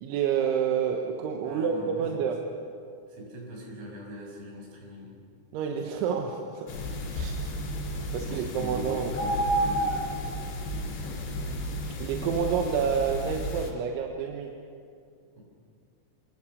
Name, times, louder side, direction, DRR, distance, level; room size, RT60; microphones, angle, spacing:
voice 1, 0.0-2.4 5.5-7.4 8.1-9.2 12.0-14.5, right 7 dB, 80° right, 2 dB, 3.6 m, -29 dB
voice 2, 1.4-2.0 3.2-5.1 7.5-7.7 8.3-9.3 9.6-10.2 10.7-11.5 15.4-15.5, right 1 dB, 65° right, -2 dB, 8.4 m, -42 dB
sound 1, 6.7-13.7, equal, 60° left, 5.3 m, -31 dB
28.0 x 20.0 x 6.8 m, 2.3 s
omnidirectional pair, 5.5 m